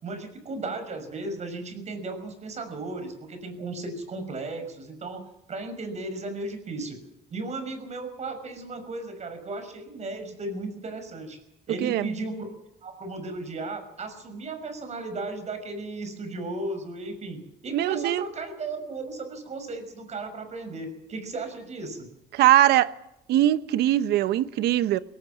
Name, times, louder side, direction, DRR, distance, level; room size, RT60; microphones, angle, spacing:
voice 1, 0.0-5.2 5.5-7.0 7.3-11.4 11.7-12.5 12.8-22.1, right 2 dB, 40° right, 6.1 m, -35 dB
voice 2, 17.7-18.2 22.3-22.9 23.3-25.0, right 13 dB, 75° right, 1.0 m, -21 dB
21.0 x 18.5 x 7.5 m
cardioid pair, 110°, 17 cm